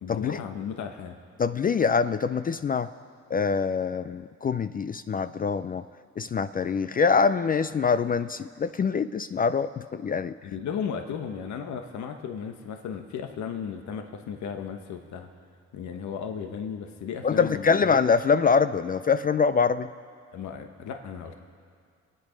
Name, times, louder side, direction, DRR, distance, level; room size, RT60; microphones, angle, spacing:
voice 1, 0.0-1.2 10.4-15.3 15.7-18.0 20.3-21.3, left 7 dB, 70° left, 5 dB, 1.1 m, -35 dB
voice 2, 1.4-2.9 3.3-5.8 6.2-10.3 17.2-19.9, left 5 dB, 30° left, 12 dB, 0.4 m, -24 dB
25.5 x 9.0 x 5.1 m, 2.1 s
cardioid pair, 90°, 30 cm